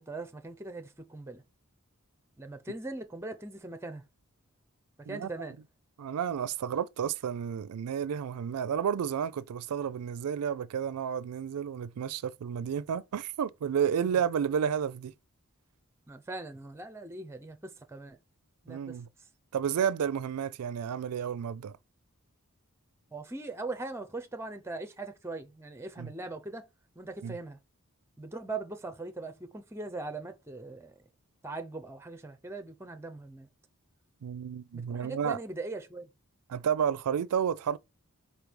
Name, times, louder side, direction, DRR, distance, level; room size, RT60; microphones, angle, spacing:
voice 1, 0.0-1.4 2.4-4.0 5.1-5.6 14.0-14.2 16.1-18.2 18.6-19.0 23.1-26.6 27.0-27.6 28.2-30.9 31.4-33.5 34.7-36.1, right 2 dB, 10° right, 0.6 m, -40 dB
voice 2, 6.0-15.1 18.7-19.1 19.5-21.8 26.0-26.1 27.2-27.4 34.2-35.4 36.5-37.8, right 8 dB, 85° right, 0.4 m, -31 dB
4.6 x 4.3 x 5.2 m
head